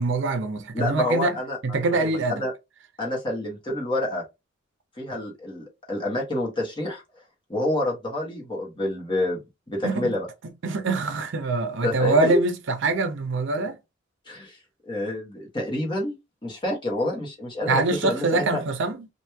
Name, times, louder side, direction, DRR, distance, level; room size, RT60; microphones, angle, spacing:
voice 1, 0.0-1.4 1.6-2.4 9.8-10.1 10.6-13.8 17.7-19.1, right 3 dB, 65° right, 0.6 m, -24 dB
voice 2, 0.7-1.6 2.0-2.5 3.0-4.2 5.0-7.0 7.5-9.4 9.7-10.3 11.8-12.4 14.3-14.6 14.9-16.1 16.4-18.6, left 1 dB, 25° left, 1.2 m, -28 dB
3.1 x 2.5 x 3.3 m
head